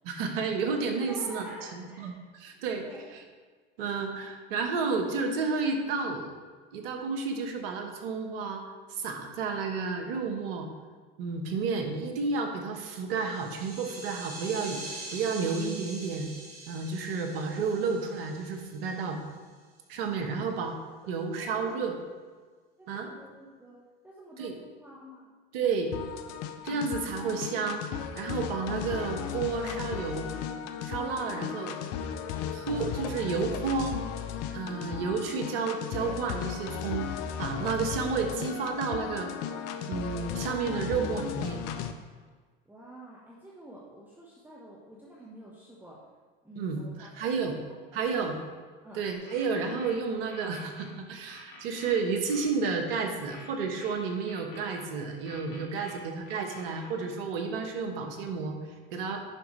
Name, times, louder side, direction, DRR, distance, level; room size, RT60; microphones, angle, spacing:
voice 1, 0.0-1.4 1.7-2.8 3.8-6.3 6.7-8.6 8.9-10.7 11.2-14.8 15.1-16.3 16.7-19.2 19.9-20.8 21.1-22.0 22.9-23.1 24.4-24.5 25.5-25.9 26.6-27.9 28.1-30.3 30.8-31.8 32.5-34.0 34.5-39.3 39.9-41.6 46.6-47.5 47.9-48.4 48.9-58.6 58.9-59.2, right 4 dB, 70° right, 4 dB, 1.2 m, -31 dB
voice 2, 1.1-2.1 2.5-3.1 21.3-21.9 22.8-23.8 24.0-25.3 42.7-46.0 46.4-47.3 47.9-48.2 48.8-49.1 55.9-56.0, right 1 dB, 5° right, -5 dB, 1.3 m, -49 dB
sound 1, 13.1-19.2, right 2 dB, 50° right, 2.5 m, -44 dB
sound 2, 25.9-41.9, left 8 dB, 55° left, 0.7 m, -36 dB
sound 3, 49.3-50.9 51.3-52.5 53.3-54.9 55.3-56.9, left 2 dB, 80° left, 1.8 m, -50 dB
9.8 x 5.9 x 3.2 m, 1.5 s
hypercardioid pair, 85°, 30 cm